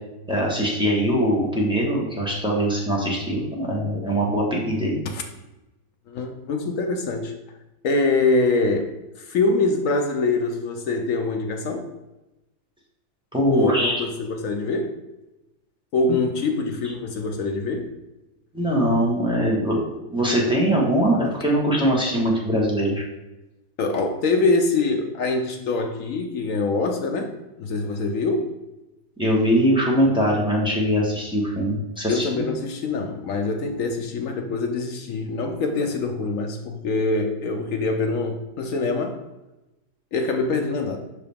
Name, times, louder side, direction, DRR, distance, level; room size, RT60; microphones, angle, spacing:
voice 1, 0.3-4.9 13.3-14.0 18.5-19.8 20.1-23.0 29.2-32.3, equal, 5° right, -4 dB, 1.0 m, -22 dB
voice 2, 6.1-7.4 7.8-8.9 9.2-11.9 13.5-15.0 15.9-17.9 23.8-28.5 32.1-39.2 40.1-41.0, left 3 dB, 65° left, 4 dB, 0.8 m, -24 dB
5.7 x 4.8 x 3.5 m, 0.99 s
omnidirectional pair, 1.9 m